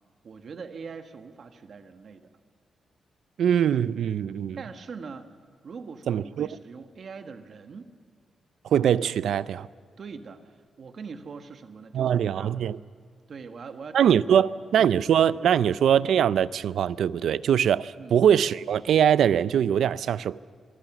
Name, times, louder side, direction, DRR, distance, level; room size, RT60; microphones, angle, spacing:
voice 1, 0.2-2.3 4.6-5.3 5.6-7.9 10.0-12.6 13.3-14.0 14.3-14.5 14.7-14.9 18.0-18.2, right 5 dB, 45° right, 1.4 m, -42 dB
voice 2, 3.4-4.6 6.1-6.5 8.6-9.7 11.9-12.8 13.9-20.4, right 9 dB, 80° right, 0.5 m, -22 dB
25.0 x 25.0 x 6.1 m
wide cardioid pair, 170°, 0 cm